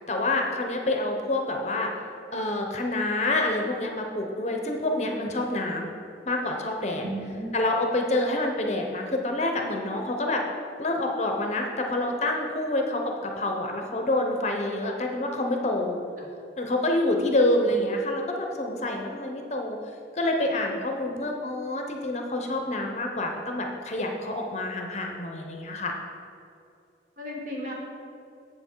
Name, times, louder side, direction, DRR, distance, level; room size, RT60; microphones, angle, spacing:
voice 1, 0.1-1.9 2.3-5.9 6.3-7.1 7.5-10.4 10.8-16.0 16.6-19.8 20.2-25.9, left 1 dB, 40° left, 2 dB, 0.7 m, -27 dB
voice 2, 7.0-7.5 27.2-27.7, right 1 dB, 45° right, -2 dB, 1.6 m, -34 dB
7.7 x 6.9 x 4.5 m, 2.6 s
head